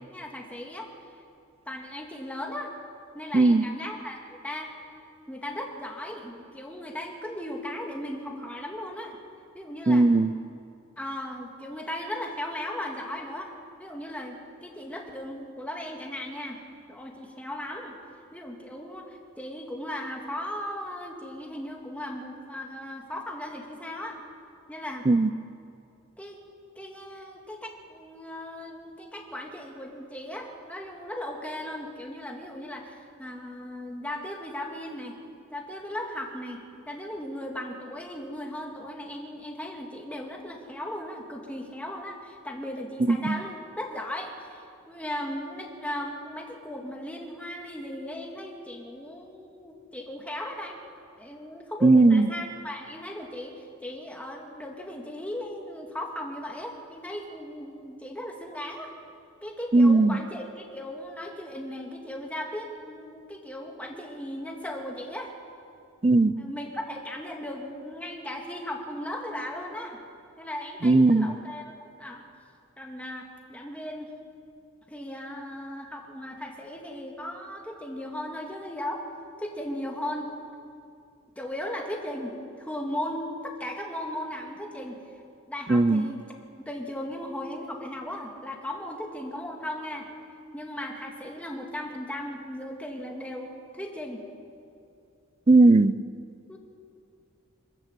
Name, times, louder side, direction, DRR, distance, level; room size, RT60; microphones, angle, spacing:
voice 1, 0.1-0.9 1.7-2.7 3.1-4.7 5.3-9.2 9.5-10.1 11.0-13.5 13.8-17.9 18.3-24.2 24.7-25.1 26.2-26.4 26.8-35.2 35.5-50.8 51.2-58.9 59.4-65.3 66.3-70.0 70.4-72.2 72.8-74.1 74.9-79.0 79.4-80.4 81.4-85.0 85.5-90.1 90.5-94.2 96.5-96.6, left 1 dB, 5° left, 1 dB, 2.2 m, -37 dB
voice 2, 9.9-10.3 25.1-25.3 43.1-43.4 51.8-52.3 59.7-60.2 66.0-66.3 70.8-71.3 85.7-86.1 95.5-96.0, right 2 dB, 30° right, 17 dB, 0.5 m, -18 dB
26.0 x 13.5 x 8.2 m, 2.5 s
head